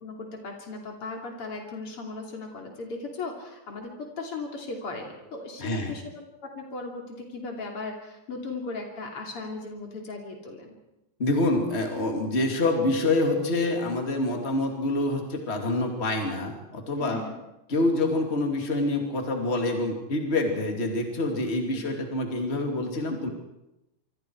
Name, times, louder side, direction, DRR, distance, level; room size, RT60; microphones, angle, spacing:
voice 1, 0.0-10.8 17.0-17.4 21.7-21.9, left 3 dB, 90° left, 1 dB, 3.9 m, -37 dB
voice 2, 5.6-5.9 11.2-17.2 17.7-23.3, left 2 dB, 30° left, 2 dB, 2.8 m, -26 dB
27.0 x 25.0 x 4.7 m, 0.92 s
omnidirectional pair, 2.4 m